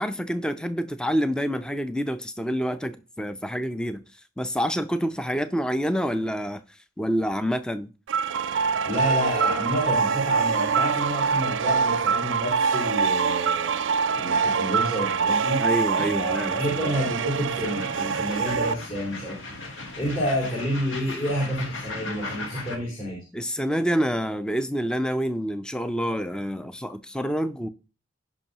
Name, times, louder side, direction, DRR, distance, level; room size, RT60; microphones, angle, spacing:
voice 1, 0.0-4.0 4.4-6.6 7.0-7.9 15.6-16.9 23.3-27.7, equal, 5° left, 0.4 m, -27 dB
sound 1, 8.1-18.7, right 5 dB, 70° right, 0.4 m, -24 dB
voice 2, 8.9-13.7 14.1-15.6 16.1-19.5 20.0-23.2, equal, 45° left, 4.3 m, -29 dB
sound 2, 15.9-22.8, left 3 dB, 75° left, 1.5 m, -38 dB
16.0 x 5.4 x 2.9 m
head